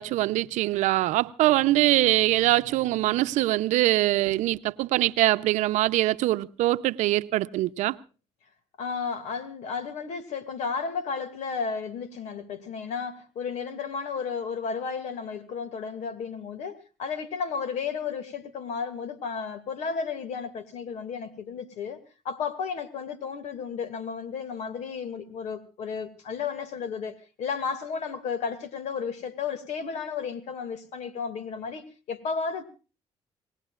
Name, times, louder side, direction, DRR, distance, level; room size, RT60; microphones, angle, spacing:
voice 1, 0.0-8.0, right 16 dB, 85° right, 0.7 m, -23 dB
voice 2, 8.8-22.0 22.2-32.6, left 5 dB, 70° left, 2.3 m, -33 dB
25.5 x 19.5 x 2.5 m
cardioid pair, 85°, 12 cm